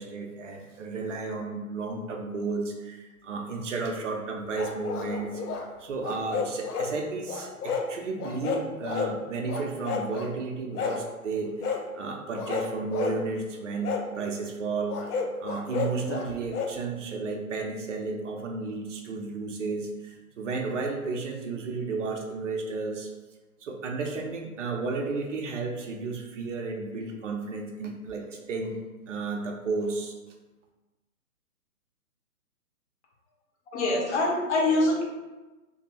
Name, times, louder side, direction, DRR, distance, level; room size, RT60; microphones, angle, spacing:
voice 1, 0.0-5.4 5.8-15.0 15.4-23.1 23.6-28.8 29.1-30.1, right 4 dB, 55° right, 2 dB, 0.6 m, -33 dB
sound 1, 4.5-5.7 6.0-6.9 7.3-7.9 8.2-9.1 9.5-10.3 10.7-11.0 11.6-11.8 12.3-13.2 13.8-14.1 14.9-16.7, left 5 dB, 90° left, 0.5 m, -31 dB
voice 2, 33.7-35.0, left 2 dB, 50° left, -2 dB, 0.8 m, -24 dB
2.6 x 2.2 x 2.9 m, 1.2 s
hypercardioid pair, 145°, 45 cm